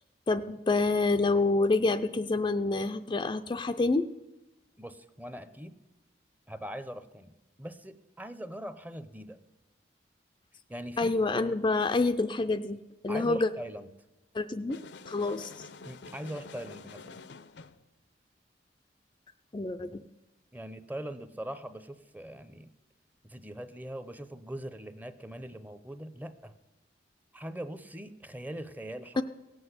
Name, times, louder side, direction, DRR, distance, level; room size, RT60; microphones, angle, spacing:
voice 1, 0.3-4.1 11.0-12.8 13.0-13.5 14.3-14.8 15.1-15.7 19.5-20.0 29.2-29.3, left 3 dB, 25° left, 8 dB, 0.4 m, -27 dB
voice 2, 4.8-5.8 6.5-7.3 7.6-9.4 10.7-11.1 13.1-13.9 15.8-17.2 20.5-22.7 23.2-26.5 27.3-29.2, right 1 dB, 10° right, 12 dB, 0.6 m, -41 dB
sound 1, 14.7-17.8, left 4 dB, 70° left, 0.6 m, -48 dB
17.0 x 7.8 x 8.0 m, 1.1 s
head